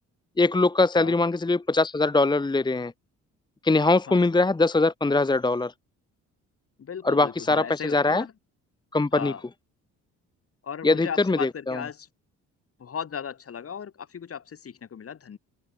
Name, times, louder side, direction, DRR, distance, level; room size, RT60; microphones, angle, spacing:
voice 1, 0.4-2.9 3.6-5.7 7.0-8.2 8.9-9.3 10.8-11.8, left 3 dB, 15° left, 1.0 m, -22 dB
voice 2, 6.8-8.3 9.1-9.4 10.6-12.1 12.8-15.4, left 7 dB, 50° left, 5.8 m, -36 dB
cardioid pair, 90°, 30 cm